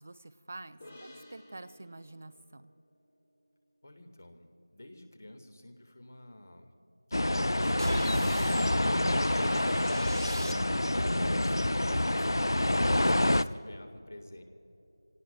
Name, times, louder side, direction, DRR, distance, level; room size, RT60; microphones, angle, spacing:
voice 1, 0.0-2.7, right 2 dB, 25° right, 13 dB, 0.4 m, -47 dB
sound 1, 0.8-4.3, left 1 dB, 20° left, 1.7 m, -55 dB
voice 2, 3.8-4.5 4.7-6.7 11.0-14.4, left 1 dB, 40° left, 6 dB, 1.6 m, -51 dB
sound 2, 7.1-13.4, left 1 dB, 70° left, 0.5 m, -27 dB
sound 3, 7.8-11.0, right 1 dB, 75° right, 1.3 m, -39 dB
28.5 x 17.5 x 2.2 m, 2.9 s
figure-of-eight pair, 175°, 2 cm